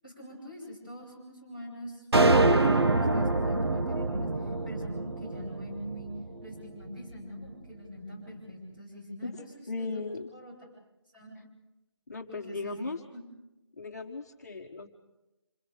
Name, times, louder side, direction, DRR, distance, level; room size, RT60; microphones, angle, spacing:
voice 1, 0.0-4.3 4.6-6.1 6.4-9.5 9.8-10.0 10.3-10.5 11.1-11.4 12.3-12.8 13.1-13.3, equal, 20° right, -5 dB, 7.8 m, -44 dB
sound 1, 2.1-6.5, right 2 dB, 60° right, 1.2 m, -25 dB
voice 2, 9.7-10.3 12.1-13.0 13.8-14.9, left 3 dB, 35° left, 1 dB, 1.4 m, -36 dB
27.5 x 27.5 x 5.1 m, 1.0 s
figure-of-eight pair, 180°, 15 cm